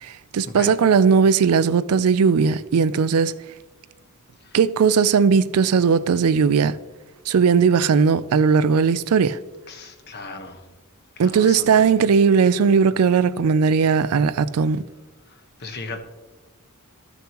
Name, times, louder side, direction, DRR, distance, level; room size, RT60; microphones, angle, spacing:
voice 1, 0.0-3.3 4.5-6.8 7.3-9.4 11.2-14.8, right 6 dB, 75° right, 0.4 m, -18 dB
voice 2, 9.7-10.6 11.2-12.0 15.6-16.0, left 3 dB, 50° left, 1.1 m, -36 dB
13.5 x 6.9 x 3.0 m
head